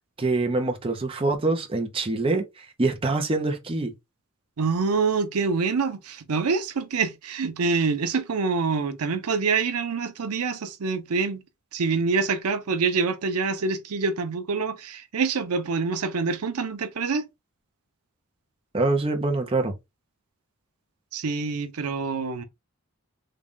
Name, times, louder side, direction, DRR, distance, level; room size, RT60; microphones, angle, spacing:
voice 1, 0.2-3.9 18.7-19.7, right 2 dB, 25° right, 0.6 m, -25 dB
voice 2, 4.6-11.4 11.7-17.3 21.1-22.4, right 4 dB, 90° right, 0.6 m, -26 dB
3.7 x 2.2 x 3.6 m
head